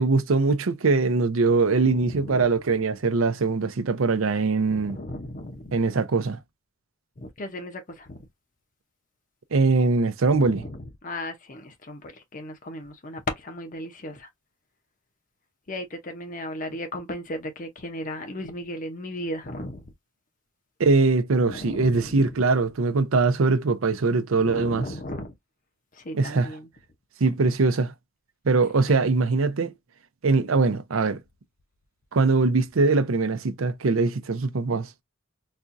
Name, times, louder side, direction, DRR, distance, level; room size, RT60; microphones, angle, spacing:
voice 1, 0.0-5.0 5.7-6.4 9.5-10.6 20.8-24.9 26.1-26.6 27.2-27.9 28.4-29.7 30.2-31.2 32.1-34.9, right 3 dB, 80° right, 0.6 m, -22 dB
voice 2, 1.8-2.5 4.7-5.7 7.2-8.2 10.3-14.3 15.7-19.8 21.4-22.4 24.3-25.3 25.9-26.7 28.9-29.0, left 1 dB, 40° left, 0.7 m, -36 dB
4.2 x 2.3 x 2.5 m
head